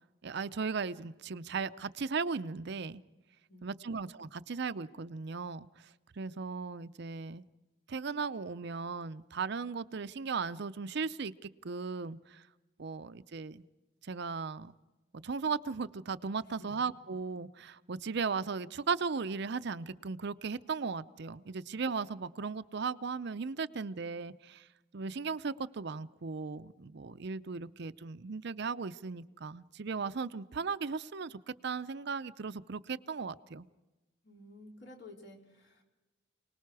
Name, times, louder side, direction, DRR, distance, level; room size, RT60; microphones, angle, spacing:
voice 1, 0.2-3.0 3.6-5.9 6.2-7.4 7.9-12.5 12.8-13.6 14.0-14.7 15.2-24.7 24.9-33.7, right 5 dB, 55° right, 13 dB, 0.6 m, -37 dB
voice 2, 3.5-3.9 16.6-16.9 34.2-35.8, left 1 dB, 60° left, 0 dB, 3.8 m, -53 dB
29.0 x 19.5 x 4.8 m, 1.1 s
head